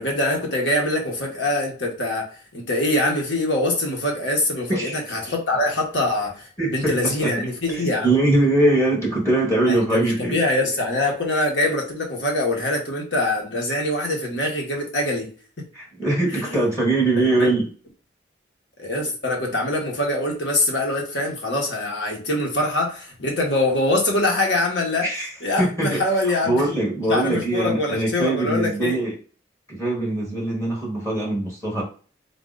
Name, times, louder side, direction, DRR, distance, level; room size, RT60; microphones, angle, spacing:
voice 1, 0.0-8.2 9.7-15.3 15.6-15.7 16.3-16.6 17.3-17.5 18.8-25.1 25.4-26.6 27.1-29.0, left 1 dB, 70° left, 0 dB, 1.5 m, -24 dB
voice 2, 6.6-7.0 7.2-7.3 7.7-10.3 15.7-17.7 25.0-25.3 25.6-29.1 29.7-31.8, right 2 dB, 15° left, -3 dB, 1.1 m, -22 dB
3.9 x 2.7 x 3.9 m, 0.39 s
head